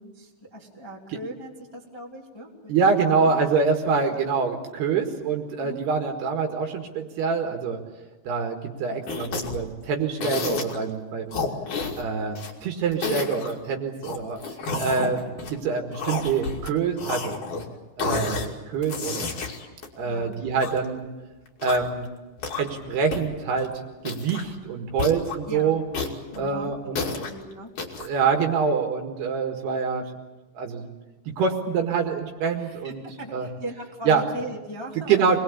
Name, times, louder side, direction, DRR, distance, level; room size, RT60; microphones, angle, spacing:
voice 1, 0.0-3.5 5.6-5.8 15.0-15.1 20.0-20.3 25.5-25.7 26.3-27.7 32.6-35.4, right 1 dB, 10° left, -2 dB, 2.1 m, -39 dB
voice 2, 2.7-7.8 8.3-11.4 12.0-14.4 14.8-15.2 15.5-17.4 18.0-19.3 19.9-21.1 21.6-22.1 22.6-23.7 24.0-25.8 26.4-27.0 28.0-30.1 30.6-30.9 31.4-33.0 33.3-33.5 34.1-34.2 35.1-35.4, right 5 dB, 65° right, 3 dB, 3.5 m, -25 dB
sound 1, 9.1-9.7 10.2-10.8 11.3-12.5 12.9-13.5 14.0-15.6 15.9-16.7 17.0-17.7 18.0-18.5 18.8-20.8 21.5-22.0 22.4-22.9 23.1-23.2 23.5-23.7 24.0-24.5 25.0-25.4 25.9-27.3 27.8-28.1, left 4 dB, 45° left, 3.5 m, -30 dB
26.0 x 20.5 x 8.6 m, 1.2 s
omnidirectional pair, 5.6 m